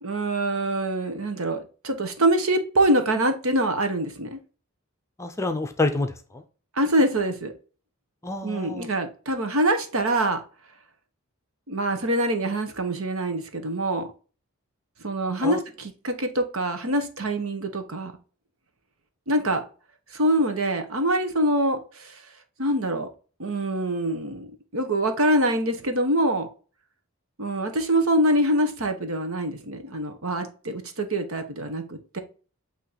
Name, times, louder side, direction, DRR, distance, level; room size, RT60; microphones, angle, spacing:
voice 1, 0.0-4.4 6.8-7.5 8.4-10.4 11.7-14.1 15.0-18.1 19.3-19.6 20.1-22.2 22.6-23.1 23.4-24.5 24.7-26.5 27.4-32.2, right 1 dB, 75° right, 7 dB, 1.2 m, -24 dB
voice 2, 5.2-6.4 8.2-8.9 15.4-15.6, left 3 dB, 15° left, 7 dB, 0.6 m, -28 dB
8.6 x 3.1 x 4.1 m, 0.37 s
head